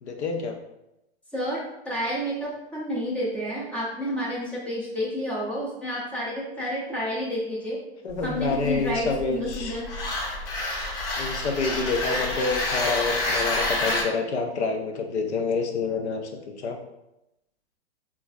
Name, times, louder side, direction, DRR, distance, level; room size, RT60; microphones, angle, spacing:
voice 1, 0.0-0.6 8.0-9.8 11.2-16.8, left 4 dB, 80° left, 3 dB, 0.7 m, -28 dB
voice 2, 1.3-7.8 8.2-9.9, equal, 5° left, -5 dB, 0.4 m, -30 dB
sound 1, 8.1-14.0, left 2 dB, 60° left, 0.9 m, -28 dB
3.9 x 2.4 x 2.3 m, 0.88 s
hypercardioid pair, 135°, 33 cm